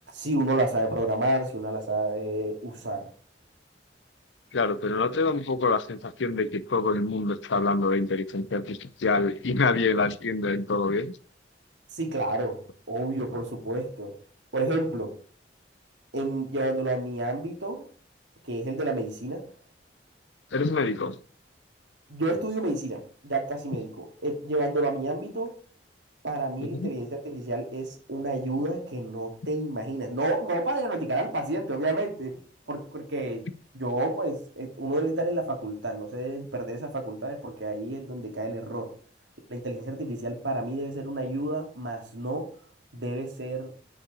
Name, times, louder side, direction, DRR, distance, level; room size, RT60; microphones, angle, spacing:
voice 1, 0.1-3.0 11.9-12.6 12.9-14.1 14.5-15.1 16.1-17.9 18.4-19.4 22.1-25.5 26.2-32.4 32.7-33.4 33.7-38.9 39.5-42.5 42.9-43.7, right 2 dB, 80° right, 3 dB, 2.6 m, -30 dB
voice 2, 4.5-11.1 20.5-21.2 26.6-26.9, left 3 dB, 85° left, 15 dB, 0.7 m, -26 dB
6.6 x 5.9 x 6.9 m, 0.42 s
head